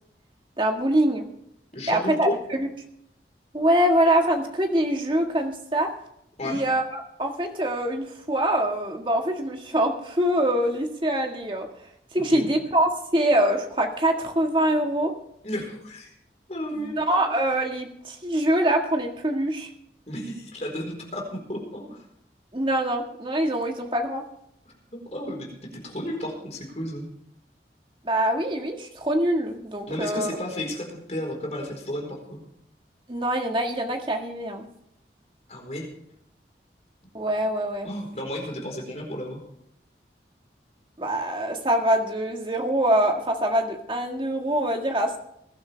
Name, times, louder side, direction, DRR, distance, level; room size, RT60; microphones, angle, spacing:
voice 1, 0.6-1.3 1.9-2.7 3.5-5.9 6.4-11.7 12.1-15.1 16.8-19.7 22.5-24.2 28.0-30.3 33.1-34.7 37.1-37.9 41.0-45.2, right 1 dB, 30° right, 3 dB, 1.8 m, -24 dB
voice 2, 1.7-2.3 6.4-6.6 12.2-12.5 15.4-16.1 16.5-17.0 20.1-22.0 24.7-24.8 25.1-27.1 29.9-32.4 35.5-35.9 37.8-39.4, left 1 dB, 40° left, 1 dB, 4.3 m, -33 dB
20.5 x 12.0 x 3.4 m, 0.76 s
head